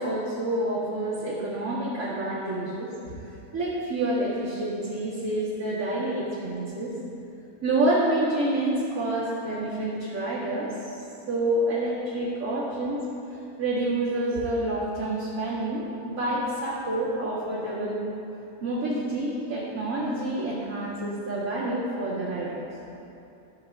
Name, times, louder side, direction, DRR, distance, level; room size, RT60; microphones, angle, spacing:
voice 1, 0.0-2.9 3.5-6.9 7.6-11.0 11.3-13.0 13.6-18.0 18.6-22.7, right 1 dB, 65° right, -11 dB, 2.3 m, -28 dB
14.5 x 6.6 x 3.6 m, 2.7 s
omnidirectional pair, 1.6 m